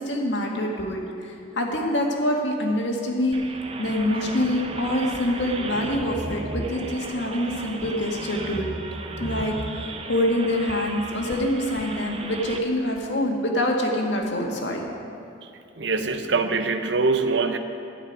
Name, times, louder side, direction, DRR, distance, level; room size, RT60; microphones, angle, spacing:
voice 1, 0.0-3.4 3.8-8.7 9.2-14.8, left 1 dB, 65° left, 0 dB, 1.9 m, -25 dB
sound 1, 3.3-12.6, right 2 dB, 30° right, 0.7 m, -35 dB
voice 2, 15.8-17.6, right 4 dB, 65° right, 8 dB, 0.8 m, -23 dB
12.5 x 7.1 x 9.5 m, 2.6 s
head